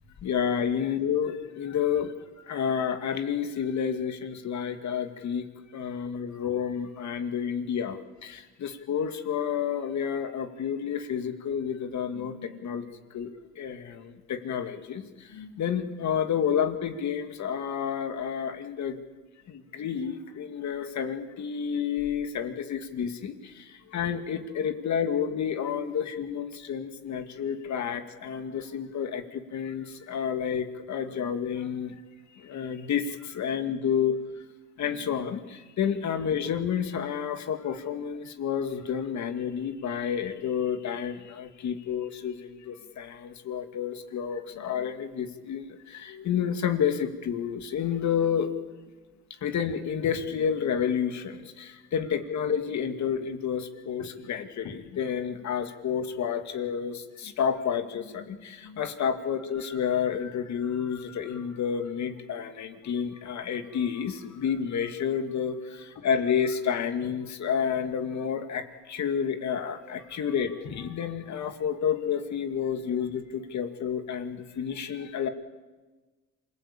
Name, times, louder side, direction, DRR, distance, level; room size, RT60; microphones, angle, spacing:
voice 1, 0.2-2.1 2.5-5.5 5.7-12.9 13.1-19.0 19.5-32.0 32.4-34.2 34.8-48.5 49.4-75.3, left 8 dB, 65° left, 7 dB, 2.3 m, -30 dB
27.0 x 20.5 x 8.7 m, 1.3 s
cardioid pair, 90°, 30 cm